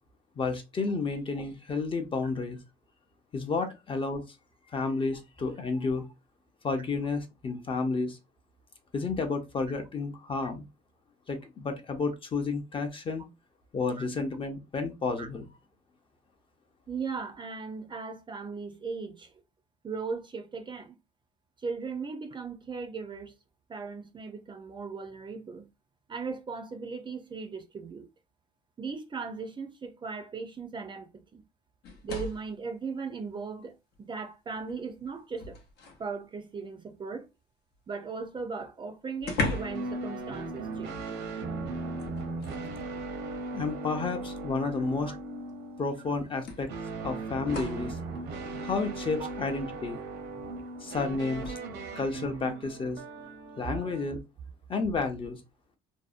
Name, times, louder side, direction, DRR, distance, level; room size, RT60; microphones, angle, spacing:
voice 1, 0.4-2.6 3.3-4.2 4.7-6.1 6.6-8.2 8.9-10.7 11.3-13.2 13.7-15.5 43.5-45.1 45.8-46.7 47.0-48.0 48.6-50.0 50.8-51.6 52.0-53.0 53.6-54.2 54.7-55.4, left 4 dB, 30° left, 0.6 m, -31 dB
voice 2, 16.9-19.3 19.8-21.0 21.6-23.3 23.7-25.7 26.1-28.1 28.8-31.4 32.0-35.6 36.0-37.3 37.9-41.0 44.6-44.7 45.1-45.2 49.2-49.3 53.6-53.8, right 5 dB, 30° right, 0.4 m, -38 dB
sound 1, 31.8-32.6 33.9-34.0 34.5-36.1 38.2-38.3 38.5-38.6 39.2-39.9 40.2-40.4 42.0-42.7 43.8-43.9 45.5-45.6 46.5-47.9 51.3-51.6, left 3 dB, 75° left, 0.8 m, -37 dB
sound 2, 39.4-54.1, right 2 dB, 80° right, 0.7 m, -38 dB
2.6 x 2.0 x 2.4 m
cardioid pair, 110°, 17 cm